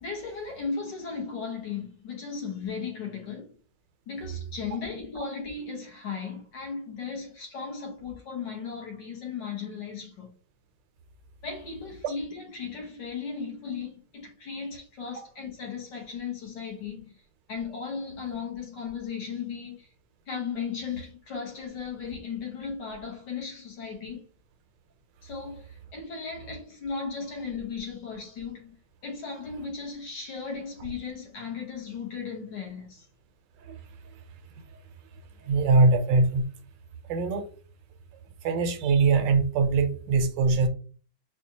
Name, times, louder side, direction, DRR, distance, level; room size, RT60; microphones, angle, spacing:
voice 1, 0.0-3.6 4.1-10.3 11.4-17.2 17.5-19.9 20.3-24.3 25.2-28.8 29.0-33.1, left 5 dB, 70° left, 1.8 m, -36 dB
voice 2, 35.4-36.4 37.1-37.4 38.4-40.7, right 3 dB, 85° right, 1.3 m, -22 dB
4.3 x 2.4 x 2.7 m
omnidirectional pair, 2.0 m